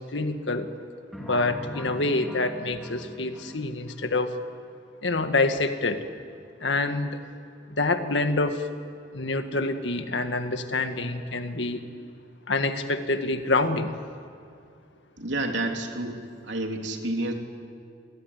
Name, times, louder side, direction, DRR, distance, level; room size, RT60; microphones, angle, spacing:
voice 1, 0.1-0.7 1.2-4.3 5.0-6.0 6.6-7.2 7.7-8.7 9.1-11.9 12.5-13.9, left 2 dB, 75° left, 7 dB, 1.8 m, -26 dB
sound 1, 1.1-4.0, equal, ahead, 3.5 m, -40 dB
voice 2, 15.2-17.3, right 2 dB, 75° right, 3 dB, 3.1 m, -30 dB
27.0 x 22.5 x 9.7 m, 2.3 s
head